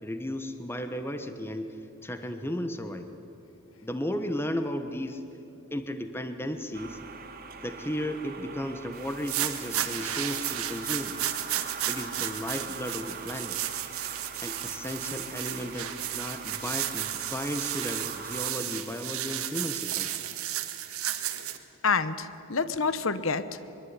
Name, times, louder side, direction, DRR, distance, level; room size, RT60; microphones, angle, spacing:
voice 1, 0.0-3.2 3.8-5.2 5.7-7.0 7.6-11.1 11.9-13.6 14.4-20.1, equal, 10° left, 8 dB, 1.2 m, -34 dB
sound 1, 6.7-18.5, right 5 dB, 40° right, 2.5 m, -43 dB
sound 2, 9.1-21.6, right 12 dB, 80° right, 1.7 m, -33 dB
voice 2, 21.8-23.8, left 4 dB, 65° left, 13 dB, 1.1 m, -28 dB
23.0 x 23.0 x 9.8 m, 2.9 s
head